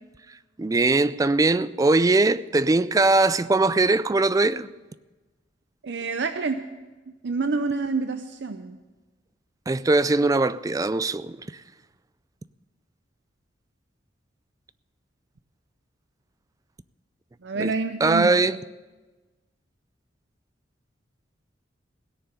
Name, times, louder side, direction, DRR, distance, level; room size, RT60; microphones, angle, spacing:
voice 1, 0.6-4.7 9.7-11.4 17.5-17.7 18.0-18.6, right 3 dB, 20° right, 0.3 m, -21 dB
voice 2, 5.8-6.7 7.2-8.8 17.4-18.5, right 4 dB, 65° right, 0.6 m, -28 dB
17.0 x 6.9 x 9.6 m
head